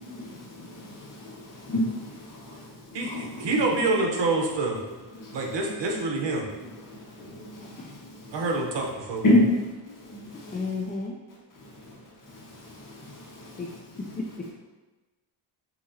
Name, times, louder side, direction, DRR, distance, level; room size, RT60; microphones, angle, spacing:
voice 1, 0.0-3.8 4.1-4.2 4.7-6.0 6.5-8.8 9.2-10.9 11.5-14.5, left 1 dB, 45° left, -4 dB, 1.4 m, -31 dB
voice 2, 2.9-4.8 5.3-6.4 8.3-9.2, right 2 dB, 70° right, 0 dB, 1.0 m, -26 dB
voice 3, 7.6-7.9 10.5-11.2 13.6-13.7 14.0-14.5, left 3 dB, 20° left, 1 dB, 0.3 m, -33 dB
6.1 x 2.9 x 2.7 m, 1.2 s
cardioid pair, 95°, 44 cm